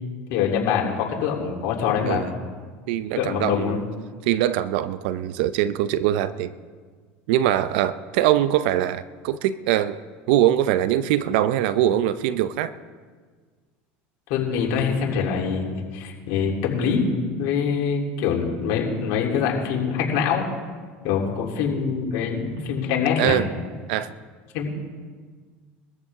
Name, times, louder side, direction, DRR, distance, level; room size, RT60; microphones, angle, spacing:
voice 1, 0.3-2.2 3.2-3.8 14.3-17.1 17.4-20.5 21.0-23.4 24.5-24.7, left 6 dB, 70° left, -1 dB, 3.4 m, -24 dB
voice 2, 2.9-3.9 4.3-6.5 7.3-10.0 10.3-12.7 23.2-23.5 23.9-24.1, right 12 dB, 75° right, 14 dB, 0.6 m, -22 dB
21.5 x 14.0 x 3.7 m, 1.5 s
supercardioid pair, 105°, 5 cm